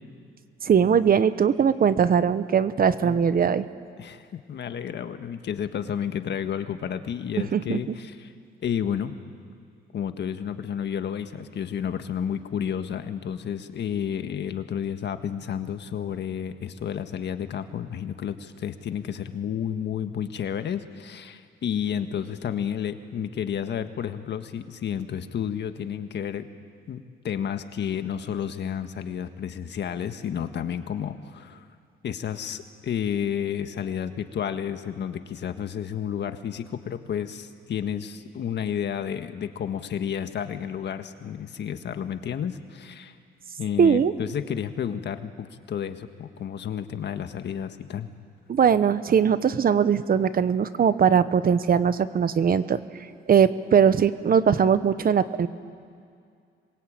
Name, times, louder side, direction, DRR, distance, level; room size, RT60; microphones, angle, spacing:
voice 1, 0.6-3.6 7.5-7.8 43.8-44.1 48.5-52.8 53.3-55.5, right 7 dB, 45° right, 13 dB, 1.1 m, -20 dB
voice 2, 4.0-8.3 8.6-9.1 9.9-26.4 26.9-31.7 32.0-43.1 43.6-48.1, left 8 dB, 60° left, 8 dB, 1.6 m, -31 dB
26.0 x 22.5 x 8.9 m, 2.3 s
cardioid pair, 90°, 20 cm